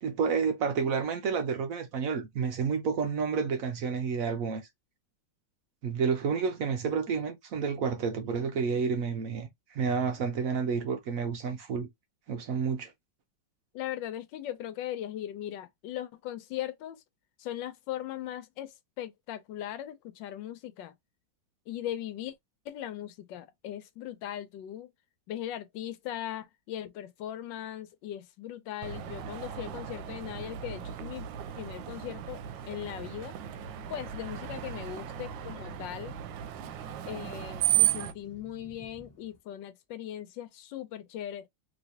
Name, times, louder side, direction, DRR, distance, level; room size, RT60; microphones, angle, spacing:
voice 1, 0.0-4.6 5.8-11.9 12.3-12.9, right 6 dB, 65° right, 0.8 m, -30 dB
voice 2, 13.7-17.0 17.4-20.9 21.7-22.3 22.6-24.9 25.3-33.4 33.9-36.1 37.1-41.5, left 11 dB, 90° left, 1.3 m, -39 dB
Screech, 28.8-38.1, right 12 dB, 85° right, 1.3 m, -34 dB
Thunder, 33.0-39.4, equal, 10° left, 1.4 m, -55 dB
3.1 x 2.9 x 2.7 m
omnidirectional pair, 2.0 m